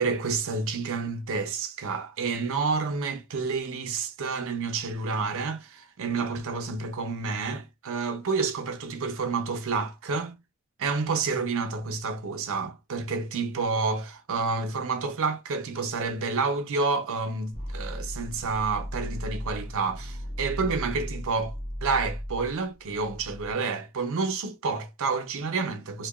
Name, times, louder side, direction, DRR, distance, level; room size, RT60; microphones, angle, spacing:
voice 1, 0.0-10.4 10.8-21.5 21.8-26.1, right 4 dB, 65° right, 0.5 m, -29 dB
sound 1, 17.5-23.5, equal, 25° left, 0.6 m, -36 dB
2.8 x 2.2 x 2.2 m
head